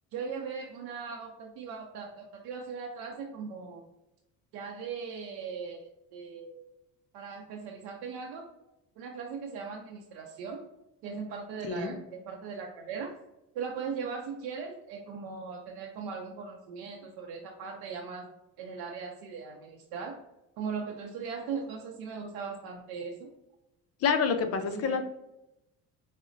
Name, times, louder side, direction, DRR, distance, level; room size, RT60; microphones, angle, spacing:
voice 1, 0.1-3.8 4.5-6.7 7.1-8.5 9.0-10.7 11.0-13.1 13.5-18.3 18.6-20.2 20.6-23.3 24.6-25.0, right 5 dB, 90° right, 1 dB, 0.5 m, -39 dB
voice 2, 11.6-11.9 24.0-25.0, left 5 dB, 45° left, 7 dB, 0.5 m, -27 dB
4.8 x 2.0 x 2.5 m, 0.92 s
cardioid pair, 120°, 36 cm